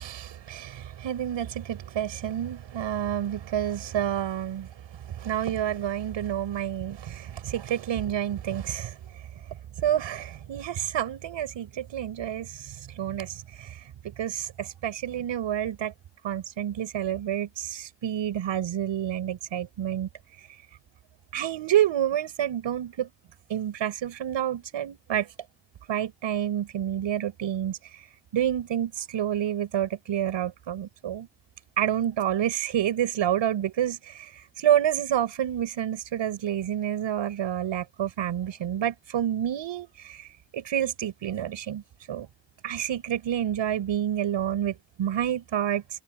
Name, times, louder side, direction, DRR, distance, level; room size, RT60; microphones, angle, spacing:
voice 1, 0.0-4.7 5.0-9.0 9.8-15.9 16.2-20.1 21.3-23.1 23.5-25.3 25.9-27.8 28.3-31.3 31.8-40.3 40.5-41.8 42.1-42.3 42.6-45.8, right 10 dB, 90° right, 6.6 m, -29 dB
cardioid pair, 55°, 44 cm